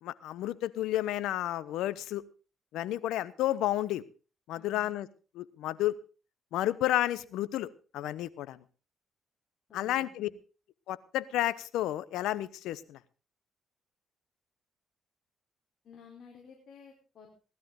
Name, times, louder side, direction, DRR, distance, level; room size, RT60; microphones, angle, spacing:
voice 1, 0.0-2.2 2.7-4.0 4.5-5.1 5.3-6.0 6.5-8.6 9.7-10.3 10.9-13.0, left 14 dB, 90° left, 18 dB, 0.9 m, -31 dB
voice 2, 4.5-4.9 9.7-10.3 15.8-17.4, left 5 dB, 55° left, 0 dB, 4.6 m, -53 dB
18.5 x 13.0 x 3.9 m, 0.35 s
cardioid pair, 90°, 0 cm